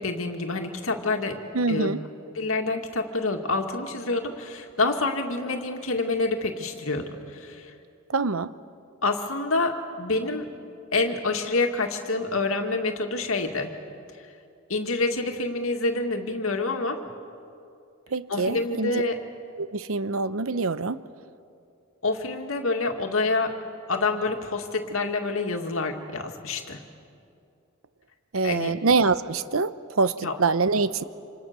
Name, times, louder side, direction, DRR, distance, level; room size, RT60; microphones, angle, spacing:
voice 1, 0.0-1.9 2.3-7.7 9.0-10.5 10.9-13.7 14.7-17.0 18.3-19.2 22.0-23.6 23.9-26.8 28.4-28.7 30.2-30.4, left 3 dB, 80° left, 4 dB, 2.3 m, -27 dB
voice 2, 1.5-2.0 8.1-8.5 18.1-19.0 19.6-21.0 28.3-31.0, right 4 dB, 85° right, 14 dB, 0.8 m, -25 dB
27.5 x 27.0 x 6.9 m, 2.6 s
head